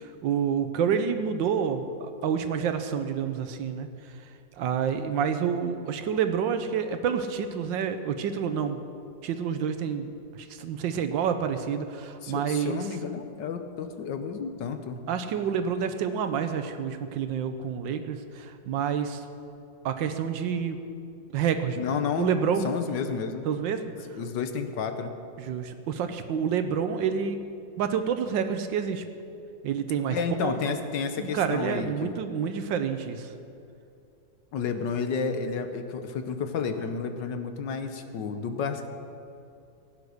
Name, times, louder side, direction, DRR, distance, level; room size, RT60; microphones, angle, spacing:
voice 1, 0.0-4.3 4.6-8.8 9.2-12.8 15.1-19.2 19.8-20.8 21.3-22.7 23.5-23.8 25.4-27.4 27.8-29.0 29.6-30.8 31.1-33.3, right 7 dB, 80° right, 8 dB, 1.4 m, -28 dB
voice 2, 12.2-15.0 21.8-22.4 22.6-23.5 24.1-25.1 30.1-32.2 34.5-38.9, left 6 dB, 75° left, 8 dB, 1.5 m, -31 dB
15.5 x 9.6 x 6.5 m, 2.5 s
omnidirectional pair, 2.0 m